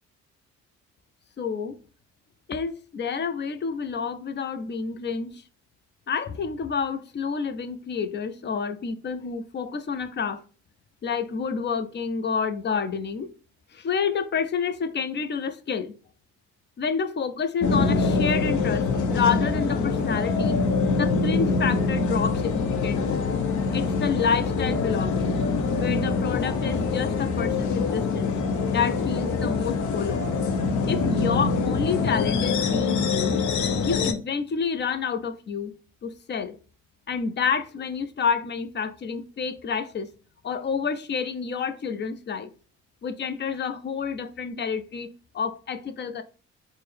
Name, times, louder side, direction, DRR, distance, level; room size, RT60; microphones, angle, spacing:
voice 1, 1.4-1.8 2.5-5.4 6.1-10.4 11.0-13.3 13.7-15.9 16.8-20.6 21.0-23.2 23.7-25.3 25.8-28.4 28.7-30.2 30.9-33.4 33.9-35.8 36.0-36.5 37.1-40.1 40.4-42.5 43.0-46.2, left 6 dB, 35° left, 0.5 m, -29 dB
sound 1, 17.6-34.1, left 4 dB, 75° left, 0.6 m, -24 dB
4.3 x 2.1 x 3.4 m
cardioid pair, 90°, 30 cm